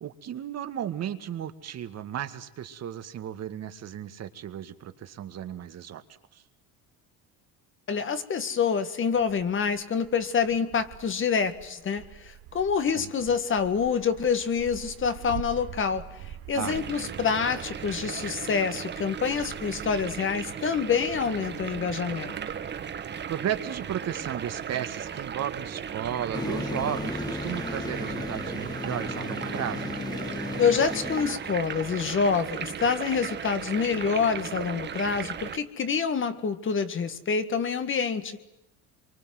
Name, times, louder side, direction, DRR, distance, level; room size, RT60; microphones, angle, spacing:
voice 1, 0.0-6.0 6.3-6.4 12.9-13.1 16.5-16.8 23.3-29.9, right 10 dB, 45° right, 2.0 m, -34 dB
voice 2, 7.9-16.1 16.5-22.4 30.6-38.4, left 6 dB, 35° left, 2.0 m, -27 dB
Wind, 9.1-24.0, right 13 dB, 70° right, 2.2 m, -47 dB
sound 1, 16.6-35.6, right 7 dB, 30° right, 1.5 m, -36 dB
sound 2, 26.3-31.4, left 2 dB, 10° left, 1.9 m, -34 dB
27.5 x 24.5 x 7.8 m
cardioid pair, 135°, 35 cm